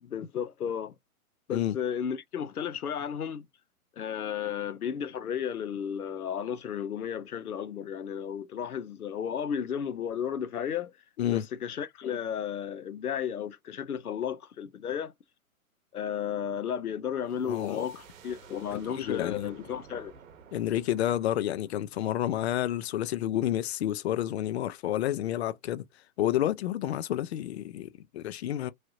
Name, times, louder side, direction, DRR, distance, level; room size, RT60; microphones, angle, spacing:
voice 1, 0.0-0.9 1.5-3.5 4.0-10.9 11.3-15.1 15.9-20.1, left 8 dB, 85° left, 0.7 m, -33 dB
sound 1, 17.3-22.8, right 6 dB, 65° right, 0.9 m, -54 dB
voice 2, 17.4-17.8 19.0-19.5 20.5-25.8 26.2-28.7, left 12 dB, 50° left, 0.4 m, -30 dB
3.2 x 2.7 x 2.4 m
hypercardioid pair, 125°, 44 cm